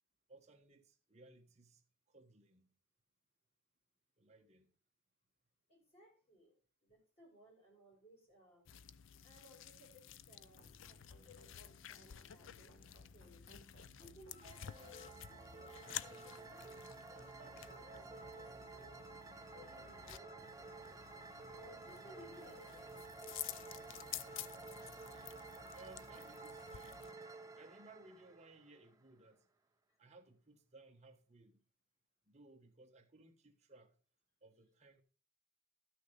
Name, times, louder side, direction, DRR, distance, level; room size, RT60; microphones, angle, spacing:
voice 1, 0.3-1.8 2.1-2.7 4.2-4.7 25.7-27.2 27.5-29.5 30.0-31.6 32.3-34.0 34.4-35.0, right 2 dB, 35° right, 1.3 m, -61 dB
voice 2, 5.7-6.5 6.8-8.6 9.2-10.6 10.9-12.7 13.1-13.5 14.0-16.6 17.0-19.0 19.5-20.6 21.5-23.1 24.8-25.3, left 1 dB, 30° left, 5.5 m, -61 dB
sound 1, 8.7-27.1, left 11 dB, 70° left, 0.4 m, -52 dB
sound 2, 10.6-26.2, right 1 dB, 85° left, 2.0 m, -64 dB
sound 3, 14.3-29.1, right 3 dB, 15° right, 0.7 m, -53 dB
12.5 x 6.4 x 4.9 m
head